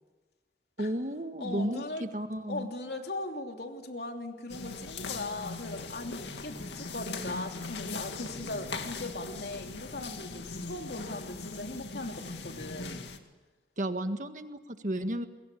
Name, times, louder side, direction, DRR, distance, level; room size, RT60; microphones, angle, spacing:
voice 1, 0.8-2.7 13.8-15.3, right 1 dB, 45° right, 8 dB, 1.7 m, -33 dB
voice 2, 1.4-2.1 2.5-13.0, left 2 dB, 65° left, 3 dB, 3.1 m, -39 dB
sound 1, 4.5-13.2, left 3 dB, 85° left, 2.3 m, -40 dB
28.5 x 22.5 x 8.6 m, 1.2 s
head